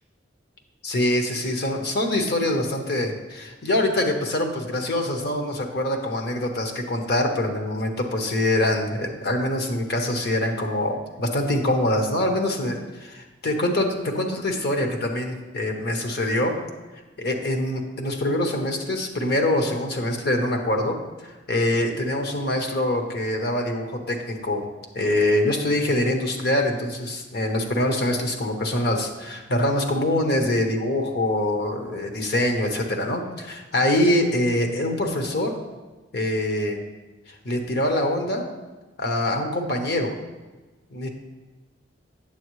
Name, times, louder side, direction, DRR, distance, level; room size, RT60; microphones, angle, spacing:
voice 1, 0.8-16.5 17.2-21.0 21.2-24.7 24.9-35.5 36.1-36.8 37.3-38.5 39.0-40.1 40.9-41.1, left 1 dB, 60° left, 3 dB, 0.9 m, -24 dB
8.6 x 7.4 x 3.1 m, 1.2 s
head